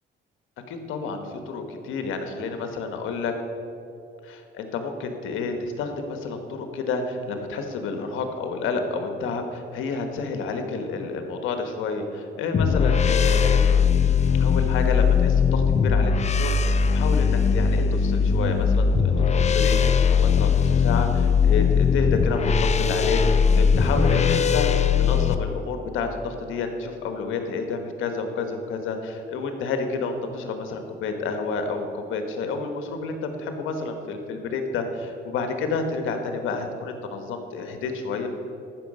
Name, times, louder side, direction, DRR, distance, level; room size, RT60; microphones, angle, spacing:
voice 1, 0.7-3.3 4.2-13.7 14.4-19.8 20.1-38.3, left 4 dB, 90° left, 6 dB, 1.3 m, -30 dB
sound 1, 12.5-25.4, left 6 dB, 35° left, 0.5 m, -20 dB
14.0 x 6.3 x 5.4 m, 2.7 s
cardioid pair, 90°, 20 cm